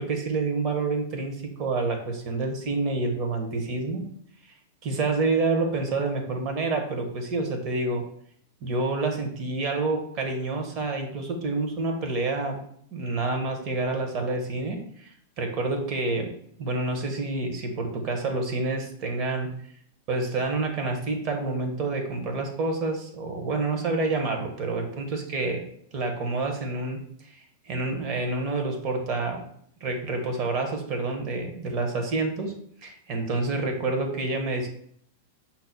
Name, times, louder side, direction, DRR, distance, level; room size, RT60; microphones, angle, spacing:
voice 1, 0.0-4.0 4.8-8.0 8.6-12.6 12.9-15.1 15.4-16.3 16.6-19.5 20.1-25.6 25.9-27.3 27.7-29.4 29.8-32.5 32.8-34.7, right 3 dB, 40° right, 3 dB, 1.0 m, -28 dB
5.7 x 2.1 x 4.0 m, 0.65 s
supercardioid pair, 145°, 0 cm